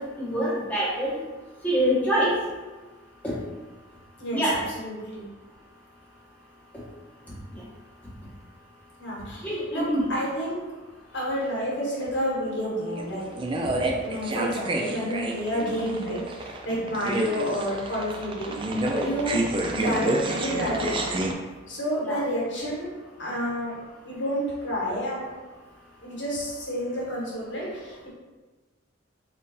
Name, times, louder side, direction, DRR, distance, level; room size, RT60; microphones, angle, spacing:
voice 1, 0.2-1.2 1.6-2.3 3.2-3.3 4.3-4.5 9.4-10.0 19.2-19.3 22.0-22.2, equal, 10° left, -8 dB, 1.3 m, -25 dB
voice 2, 4.2-5.2 9.0-10.6 11.1-13.2 14.0-18.5 19.0-19.4 19.7-21.1 21.7-22.9 23.2-23.7 24.0-25.3 26.0-28.1, equal, 65° left, -5 dB, 1.4 m, -30 dB
sound 1, 12.9-21.3, right 1 dB, 25° right, 0.3 m, -29 dB
3.7 x 2.6 x 4.1 m, 1.3 s
head